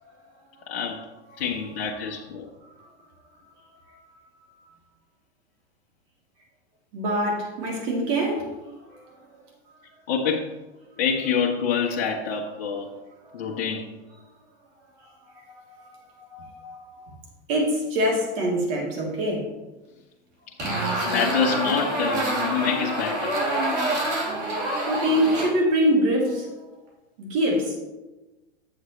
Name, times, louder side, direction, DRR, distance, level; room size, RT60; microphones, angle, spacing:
voice 1, 0.7-1.1 1.4-2.5 10.1-10.6 11.0-12.9 13.3-13.9 16.6-17.1 20.6-23.3, left 6 dB, 60° left, -1 dB, 1.1 m, -27 dB
voice 2, 6.9-8.5 8.8-9.4 13.3-13.4 15.0-16.8 17.5-19.5 23.7-26.5 27.2-27.8, equal, 55° right, -1 dB, 3.0 m, -26 dB
sound 1, 20.6-25.5, right 1 dB, 85° right, 2.8 m, -26 dB
7.9 x 7.7 x 3.2 m, 1.1 s
hypercardioid pair, 120°, 34 cm